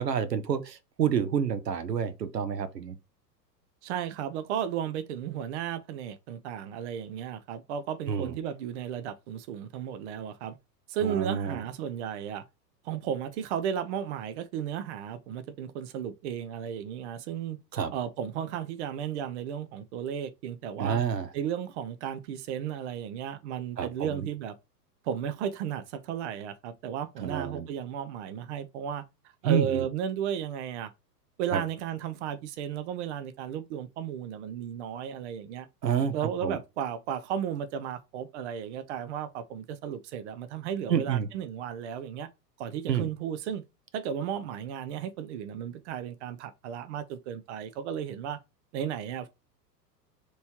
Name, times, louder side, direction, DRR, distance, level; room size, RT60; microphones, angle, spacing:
voice 1, 0.0-3.0 8.1-8.3 11.0-11.6 17.7-17.9 20.8-21.3 23.8-24.3 27.2-27.7 29.4-29.8 31.5-31.6 35.8-36.1 36.4-36.6 40.9-41.3 42.9-43.1, right 8 dB, 80° right, 0.8 m, -28 dB
voice 2, 3.8-10.6 10.9-12.4 12.8-17.6 17.9-21.0 21.3-24.5 25.0-29.0 29.4-30.9 31.4-35.7 36.1-42.3 42.6-43.6 43.9-48.4 48.7-49.3, right 9 dB, 45° right, 0.6 m, -34 dB
5.3 x 3.1 x 2.9 m
figure-of-eight pair, 95°, 49 cm